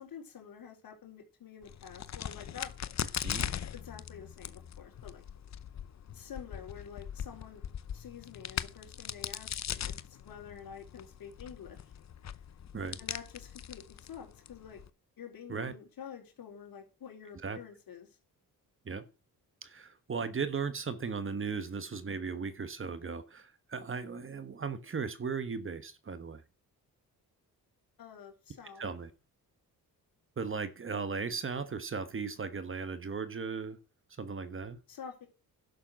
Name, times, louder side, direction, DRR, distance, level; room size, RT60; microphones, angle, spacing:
voice 1, 0.0-2.7 3.7-5.2 6.1-7.6 7.9-11.8 13.0-14.8 15.2-18.1 28.0-28.8 34.9-35.3, left 7 dB, 70° left, 4.2 m, -48 dB
Crack, 1.6-14.9, left 9 dB, 50° left, 0.8 m, -40 dB
voice 2, 3.2-3.5 12.7-13.0 15.5-15.7 17.4-17.6 18.8-19.0 19.6-26.4 28.8-29.1 30.4-33.8 34.2-34.8, right 5 dB, 35° right, 1.2 m, -37 dB
11.5 x 6.8 x 6.2 m
cardioid pair, 110°, 36 cm